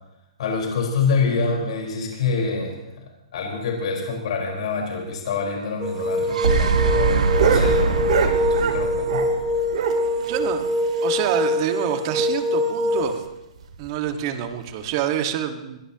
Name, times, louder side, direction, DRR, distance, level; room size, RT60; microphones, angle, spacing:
voice 1, 0.4-3.0 3.3-9.2, left 4 dB, 65° left, -1 dB, 4.6 m, -26 dB
sound 1, 5.8-13.2, left 1 dB, 15° right, 3.4 m, -24 dB
sound 2, 6.0-9.4 9.7-11.7 12.0-12.1 12.4-12.5 12.9-13.0 13.6-13.8 14.7-14.8, right 8 dB, 70° right, 2.2 m, -27 dB
sound 3, 6.1-10.2, right 5 dB, 85° right, 1.5 m, -23 dB
voice 2, 10.3-10.7 11.0-13.2 13.8-15.8, right 10 dB, 40° right, 6 dB, 1.7 m, -26 dB
21.5 x 17.5 x 3.0 m, 0.93 s
hypercardioid pair, 155°, 4 cm